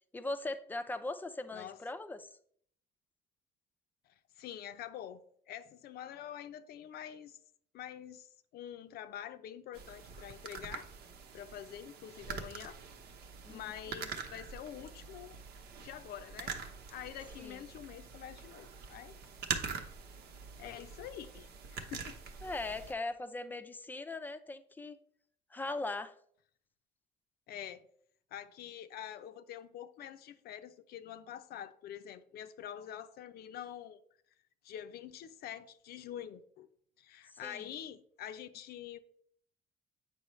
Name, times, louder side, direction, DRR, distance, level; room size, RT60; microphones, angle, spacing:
voice 1, 0.1-2.4 13.4-13.7 17.4-17.6 22.4-25.0 25.5-26.2 37.3-37.7, left 2 dB, 10° left, 0.5 m, -40 dB
voice 2, 4.4-5.2 5.5-7.4 7.7-10.9 11.3-12.8 13.5-15.4 15.8-16.5 16.9-19.2 20.6-22.2 27.5-27.9 28.3-34.0 34.6-36.7 37.0-39.0, left 10 dB, 70° left, 0.6 m, -46 dB
sound 1, 9.7-22.9, right 6 dB, 70° right, 1.0 m, -44 dB
8.3 x 5.6 x 3.1 m
cardioid pair, 110°, 17 cm